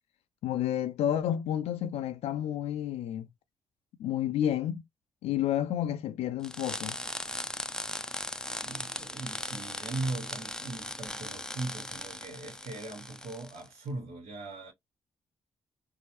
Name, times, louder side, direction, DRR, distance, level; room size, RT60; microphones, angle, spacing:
voice 1, 0.4-3.3 4.0-4.8 5.2-7.0, left 11 dB, 80° left, 0.4 m, -30 dB
sound 1, 6.4-13.7, left 1 dB, 5° left, 0.4 m, -38 dB
voice 2, 8.6-14.7, right 2 dB, 75° right, 1.2 m, -39 dB
4.5 x 2.0 x 2.9 m
supercardioid pair, 55°, 11 cm